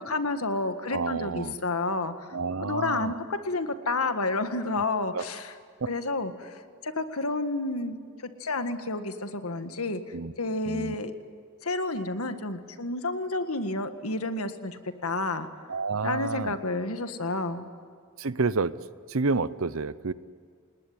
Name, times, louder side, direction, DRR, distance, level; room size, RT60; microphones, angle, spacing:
voice 1, 0.0-5.5 5.9-8.0 8.4-10.0 10.4-11.1 11.6-15.5 16.0-17.7, left 2 dB, 80° left, 8 dB, 1.8 m, -30 dB
voice 2, 0.9-1.6 2.3-3.2 4.8-4.9 5.1-5.2 5.8-5.9 10.1-10.3 10.7-10.9 15.7-16.6 18.2-18.7 19.1-20.1, right 4 dB, 70° right, 16 dB, 0.8 m, -29 dB
28.5 x 20.0 x 9.6 m, 2.1 s
head